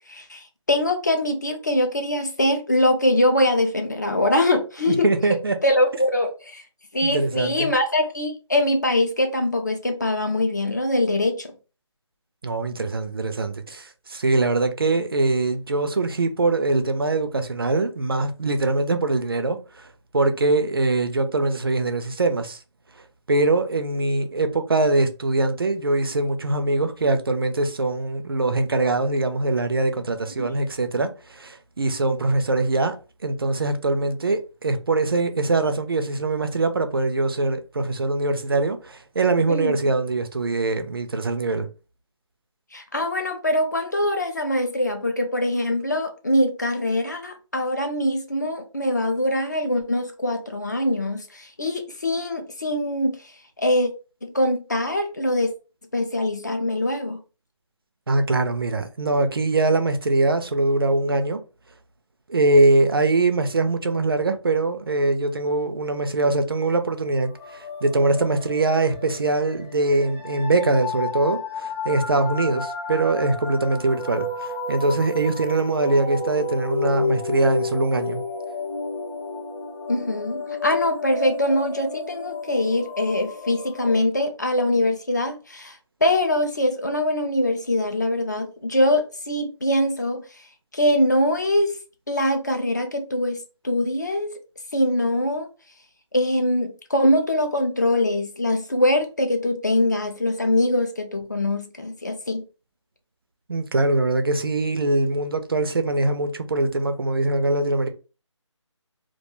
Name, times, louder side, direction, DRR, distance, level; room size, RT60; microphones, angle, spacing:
voice 1, 0.1-5.1 5.6-6.6 6.9-11.5 30.4-30.5 39.5-39.8 42.7-53.2 53.6-53.9 54.2-55.5 55.9-57.2 79.9-90.2 90.7-91.8 92.1-93.4 93.6-94.3 94.7-95.5 96.1-102.4, left 1 dB, 35° left, 0.4 m, -23 dB
voice 2, 4.9-5.6 7.0-7.7 12.4-22.6 23.3-33.0 33.2-41.7 58.1-61.4 62.3-78.2 103.5-107.9, right 2 dB, 50° right, 0.4 m, -22 dB
sound 1, 67.2-84.0, left 3 dB, 20° left, 0.9 m, -32 dB
2.3 x 2.2 x 2.9 m
figure-of-eight pair, 170°, 16 cm